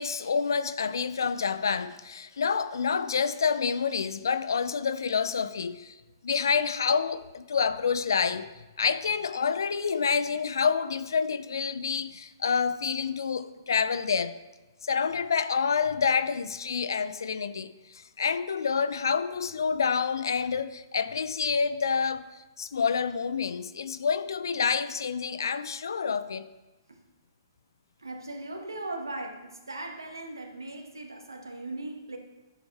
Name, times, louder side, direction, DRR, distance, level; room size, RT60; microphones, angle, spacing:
voice 1, 0.0-5.9 6.2-8.5 8.8-14.3 14.8-22.2 22.6-26.4, left 6 dB, 70° left, 0.5 m, -28 dB
voice 2, 28.0-32.2, right 2 dB, 85° right, 1.5 m, -38 dB
11.0 x 6.9 x 3.4 m
figure-of-eight pair, 120°, 2 cm